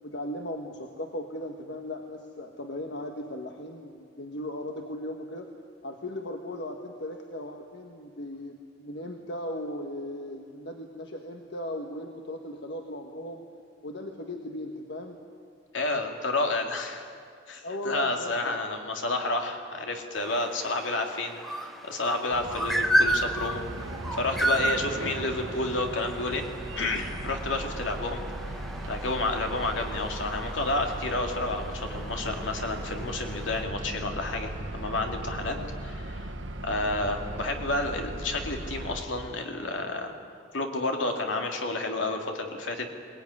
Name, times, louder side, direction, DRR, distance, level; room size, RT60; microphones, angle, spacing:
voice 1, 0.0-5.5 5.8-13.4 13.8-15.2 17.6-18.6 35.4-35.7, left 1 dB, 65° left, 3 dB, 1.4 m, -37 dB
voice 2, 15.7-17.1 17.5-23.6 24.2-26.4 26.8-28.2 28.9-35.6 35.8-36.3 36.6-40.1 40.5-42.9, left 2 dB, 80° left, 3 dB, 2.6 m, -30 dB
sound 1, 20.1-33.6, right 1 dB, ahead, 1.2 m, -33 dB
sound 2, 22.3-39.0, right 1 dB, 85° right, 1.4 m, -37 dB
22.0 x 19.0 x 9.7 m, 2.3 s
head